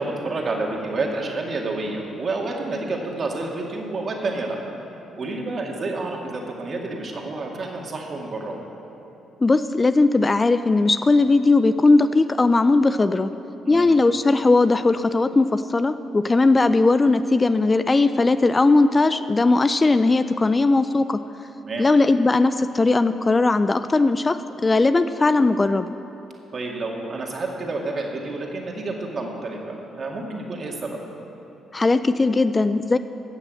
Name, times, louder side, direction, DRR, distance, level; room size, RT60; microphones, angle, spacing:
voice 1, 0.0-4.6 5.2-8.6 13.7-13.9 21.6-21.9 26.5-31.0, right 2 dB, 45° right, 0 dB, 2.0 m, -29 dB
voice 2, 9.4-13.3 13.7-21.2 21.8-25.9 31.7-33.0, left 3 dB, 25° left, 12 dB, 0.3 m, -18 dB
15.5 x 6.2 x 7.7 m, 3.0 s
cardioid pair, 90°, 0 cm